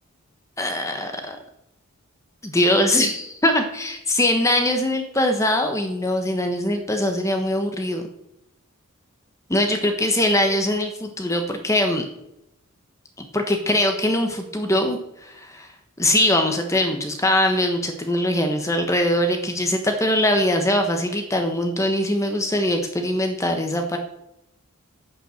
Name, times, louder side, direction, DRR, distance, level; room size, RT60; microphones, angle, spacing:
voice 1, 0.6-1.4 2.4-8.0 9.5-12.0 13.2-15.7 16.0-24.0, left 1 dB, 15° left, 5 dB, 1.1 m, -22 dB
8.3 x 7.4 x 6.4 m, 0.81 s
head